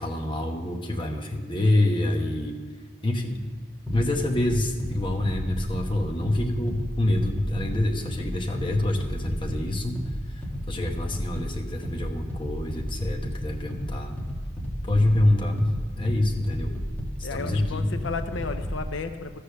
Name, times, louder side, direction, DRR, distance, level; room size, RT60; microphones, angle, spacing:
voice 1, 0.0-2.6 3.0-3.4 3.9-10.0 10.3-10.4 10.7-14.2 14.8-16.8 17.2-17.9, left 1 dB, 25° left, 2 dB, 1.0 m, -26 dB
sound 1, 3.9-18.9, equal, 10° left, 1.7 m, -33 dB
voice 2, 17.2-19.4, left 4 dB, 90° left, 9 dB, 0.7 m, -33 dB
13.0 x 6.7 x 6.7 m, 1.4 s
head